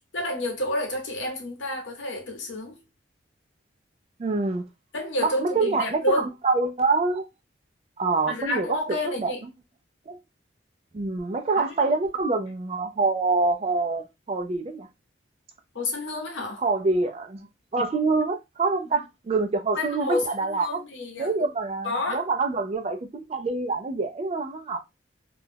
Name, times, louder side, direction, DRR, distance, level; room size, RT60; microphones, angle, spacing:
voice 1, 0.1-2.8 4.9-6.3 8.3-9.4 11.6-11.9 15.7-16.6 19.7-21.5 21.8-22.3, left 1 dB, 80° left, 0.8 m, -30 dB
voice 2, 4.2-4.6 5.2-7.3 8.0-8.7 9.2-9.3 10.1-10.2 10.9-14.9 16.6-17.5 17.7-20.8 21.2-24.8, right 3 dB, 30° right, 0.3 m, -26 dB
2.3 x 2.1 x 3.2 m
head